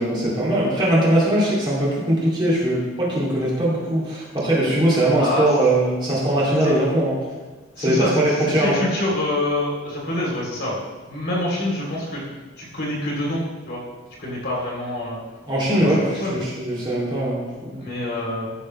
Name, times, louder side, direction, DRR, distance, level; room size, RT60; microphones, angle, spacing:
voice 1, 0.0-7.2 7.8-8.8 15.5-17.9, right 1 dB, 20° right, -6 dB, 2.5 m, -21 dB
voice 2, 5.2-5.5 6.6-6.7 7.8-10.8 11.1-12.2 12.6-13.8 14.2-15.2 15.7-16.4 17.7-18.5, left 1 dB, 50° left, -4 dB, 2.9 m, -26 dB
14.0 x 6.6 x 3.2 m, 1.3 s
head